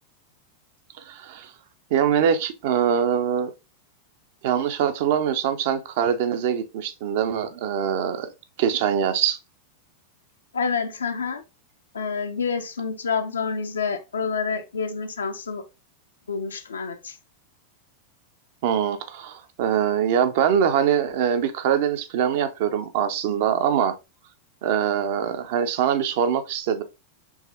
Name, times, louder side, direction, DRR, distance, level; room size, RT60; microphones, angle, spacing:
voice 1, 1.0-1.5 1.9-3.5 4.4-8.3 8.6-9.4 18.6-24.0 24.6-26.8, right 8 dB, 50° right, 0.5 m, -23 dB
voice 2, 10.5-11.4 11.9-15.6 16.3-17.2, left 5 dB, 70° left, 0.5 m, -28 dB
4.7 x 3.4 x 2.5 m
figure-of-eight pair, 90°, 0 cm